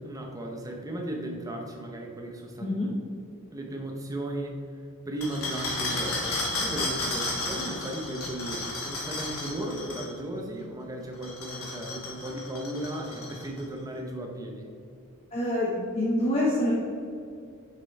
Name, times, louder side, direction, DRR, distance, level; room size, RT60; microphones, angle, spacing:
voice 1, 0.0-2.8 3.5-4.6 5.1-14.7, right 1 dB, 15° right, 1 dB, 0.8 m, -36 dB
voice 2, 2.6-2.9 15.3-16.7, left 1 dB, 30° left, -6 dB, 1.0 m, -26 dB
sound 1, 5.2-10.1 11.1-13.6, left 2 dB, 70° left, 1.7 m, -33 dB
6.7 x 5.7 x 4.1 m, 2.4 s
head